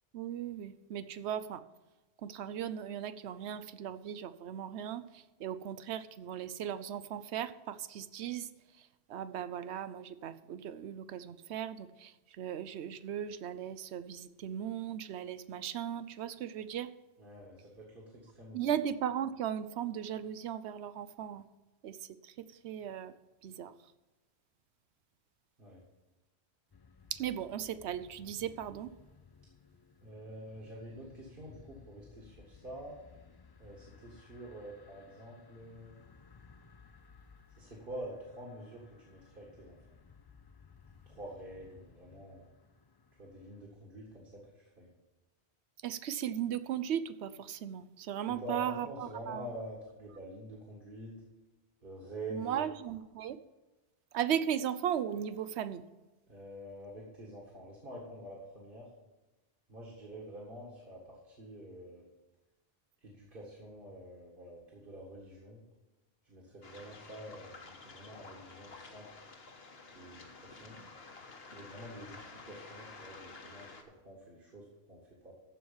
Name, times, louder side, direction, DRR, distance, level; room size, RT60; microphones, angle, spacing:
voice 1, 0.1-1.6 2.2-8.5 8.8-16.9 18.5-21.5 21.8-23.1 23.4-23.7 27.1-28.9 45.8-49.5 52.3-53.4 54.1-55.8, right 9 dB, 80° right, 13 dB, 0.9 m, -37 dB
voice 2, 17.2-18.6 25.6-25.8 30.0-33.0 33.6-36.0 37.6-39.8 41.1-42.4 43.2-44.9 48.3-51.2 51.8-52.6 56.3-58.9 59.7-62.1 63.0-65.6 66.2-69.1 69.9-70.8 71.5-75.3, right 1 dB, 50° right, -4 dB, 2.2 m, -47 dB
sound 1, 26.7-43.7, left 5 dB, 40° left, 0.3 m, -59 dB
Waves surf, 66.6-73.8, left 3 dB, 65° left, 1.5 m, -51 dB
14.0 x 4.7 x 7.2 m, 1.1 s
omnidirectional pair, 1.1 m